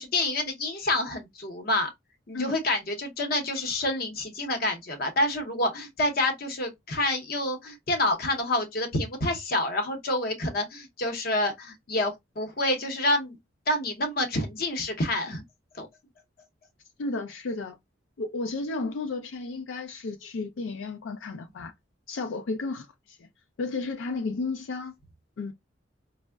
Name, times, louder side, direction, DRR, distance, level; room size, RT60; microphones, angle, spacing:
voice 1, 0.0-1.9 2.3-13.4 13.7-15.4 15.7-15.9, left 1 dB, 55° left, 0.7 m, -28 dB
voice 2, 17.0-17.8 18.2-21.7 22.1-23.3 23.6-24.9 25.4-25.5, left 3 dB, 80° left, 0.4 m, -33 dB
4.3 x 2.0 x 2.2 m
head